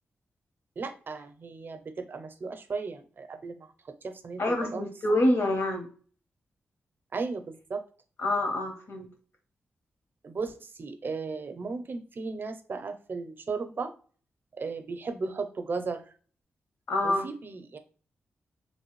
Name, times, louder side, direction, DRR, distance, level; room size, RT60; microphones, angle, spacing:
voice 1, 0.8-4.8 7.1-7.8 10.2-13.9 14.6-16.1 17.0-17.8, right 4 dB, 50° right, 8 dB, 0.5 m, -36 dB
voice 2, 4.4-5.9 8.2-9.1 16.9-17.2, left 1 dB, 65° left, 4 dB, 1.0 m, -26 dB
3.1 x 2.5 x 3.0 m, 0.41 s
cardioid pair, 75°, 4 cm